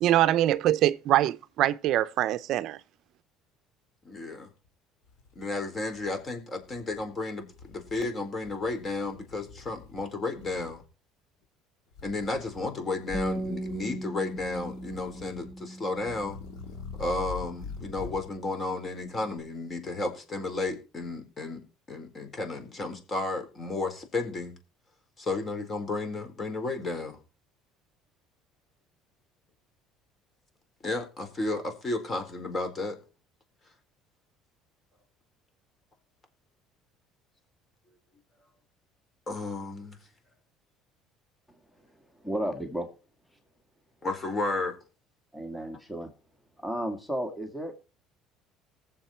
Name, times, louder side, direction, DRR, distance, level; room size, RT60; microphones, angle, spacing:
voice 1, 0.0-2.8, right 13 dB, 60° right, 0.6 m, -24 dB
voice 2, 4.0-4.5 5.4-10.8 12.0-16.4 17.0-24.5 25.2-27.2 30.8-33.0 39.3-40.0 44.0-44.8, left 3 dB, 25° left, 4.3 m, -33 dB
sound 1, 4.6-4.7 5.1-6.2 6.6-7.0 7.5-8.1 8.4-10.0 10.3-10.8 11.9-12.7 13.0-14.0 14.3-15.5 15.9-18.3, left 5 dB, 75° left, 3.8 m, -44 dB
Bass guitar, 13.1-19.4, right 1 dB, 10° right, 1.5 m, -40 dB
voice 3, 42.2-42.9 45.3-46.1 46.6-47.7, equal, 5° left, 2.1 m, -33 dB
19.5 x 7.5 x 4.4 m
cardioid pair, 125°, 0 cm